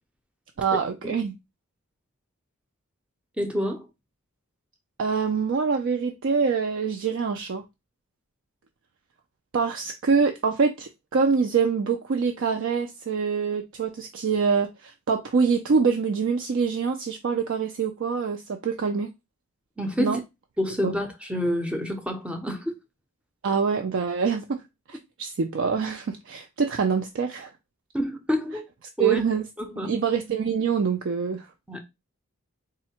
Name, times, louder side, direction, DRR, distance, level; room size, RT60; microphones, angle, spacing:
voice 1, 0.6-1.3 5.0-7.6 9.5-19.1 20.0-20.2 20.8-20.9 23.4-24.6 24.9-27.5 29.0-29.4 29.8-31.5, right 5 dB, 55° right, 0.4 m, -25 dB
voice 2, 3.4-3.9 19.8-20.2 20.6-22.7 27.9-28.7 29.0-29.2 29.6-29.9 31.7-31.8, equal, 5° right, 0.6 m, -28 dB
3.7 x 2.1 x 4.3 m
head